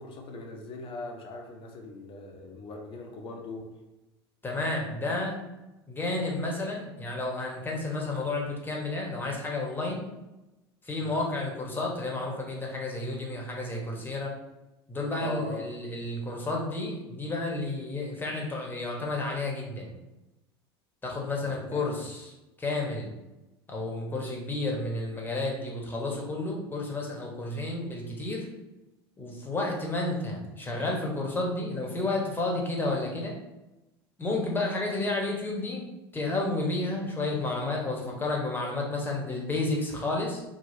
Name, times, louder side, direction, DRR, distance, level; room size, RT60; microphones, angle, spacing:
voice 1, 0.0-3.7 11.0-11.2 15.2-15.7 21.4-21.9, left 2 dB, 40° left, 2 dB, 0.7 m, -40 dB
voice 2, 4.4-5.4 5.9-10.1 10.8-14.4 14.9-19.9 21.0-22.3 22.6-23.1 23.7-28.5 29.2-33.3 34.2-35.9 36.1-40.4, left 2 dB, 15° left, -1 dB, 1.1 m, -31 dB
3.0 x 2.4 x 3.8 m, 1.0 s
figure-of-eight pair, 75°, 14 cm